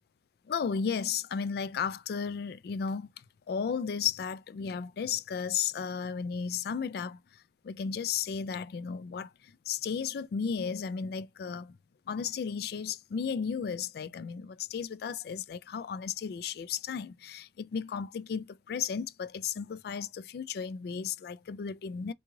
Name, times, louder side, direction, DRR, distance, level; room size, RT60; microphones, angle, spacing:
voice 1, 0.5-11.8 12.1-22.1, left 6 dB, 60° left, 0.3 m, -34 dB
3.7 x 2.3 x 3.0 m
head